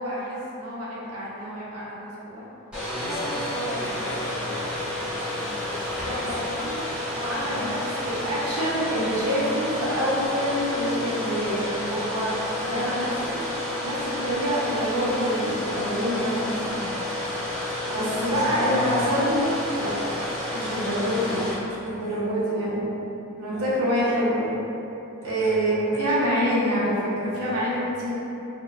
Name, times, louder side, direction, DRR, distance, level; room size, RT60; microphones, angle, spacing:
voice 1, 0.0-2.5 3.1-3.8 6.0-6.8 7.1-13.4 13.8-16.9 17.9-19.5 19.8-20.0 20.5-21.4 21.8-22.9 23.4-24.5 25.2-28.1, equal, 85° right, -7 dB, 0.8 m, -27 dB
voice 2, 2.7-6.7 7.4-7.8 18.3-19.1 20.7-21.5 21.9-22.2 23.5-23.7 25.2-25.6 25.9-26.0 27.3-27.6, left 1 dB, 10° left, -8 dB, 0.5 m, -39 dB
Domestic sounds home sounds, 2.7-21.5, left 1 dB, 5° right, 0.9 m, -30 dB
4.4 x 2.2 x 2.4 m, 3.0 s
head